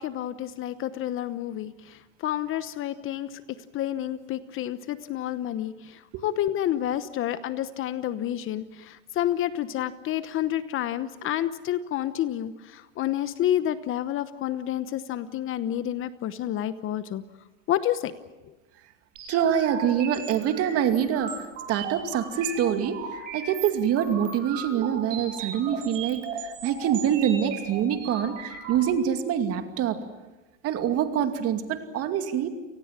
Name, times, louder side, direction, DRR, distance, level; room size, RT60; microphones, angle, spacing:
voice 1, 0.0-1.7 2.2-3.3 3.7-5.7 6.2-12.5 13.0-17.2 17.7-18.1, left 12 dB, 35° left, 13 dB, 1.0 m, -29 dB
sound 1, 19.2-28.8, right 6 dB, 80° right, 7.2 m, -37 dB
voice 2, 19.3-21.4 21.7-23.0 23.3-26.2 26.6-30.0 30.6-32.5, right 9 dB, 40° right, 7 dB, 2.5 m, -25 dB
29.5 x 19.0 x 7.5 m, 1.1 s
supercardioid pair, 125°, 38 cm